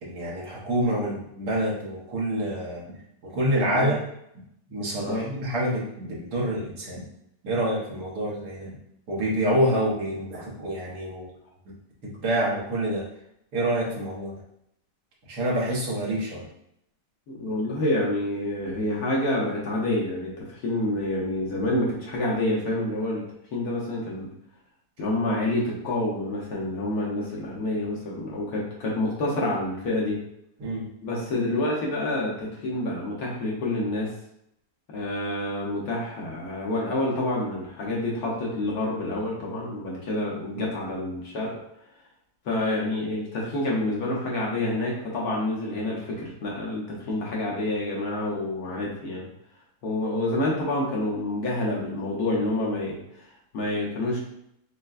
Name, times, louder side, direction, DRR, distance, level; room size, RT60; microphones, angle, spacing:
voice 1, 0.0-4.0 4.7-7.1 7.4-8.8 9.1-11.3 11.7-11.8 12.0-13.1 13.5-14.4 15.3-16.5 30.6-30.8 40.5-40.7, right 1 dB, 65° right, -5 dB, 1.6 m, -27 dB
voice 2, 17.3-23.2 23.5-24.3 25.0-30.2 31.0-34.1 34.9-41.6 42.4-49.3 49.8-54.2, left 1 dB, 65° left, -4 dB, 1.3 m, -28 dB
6.5 x 2.2 x 2.4 m, 0.76 s
omnidirectional pair, 1.9 m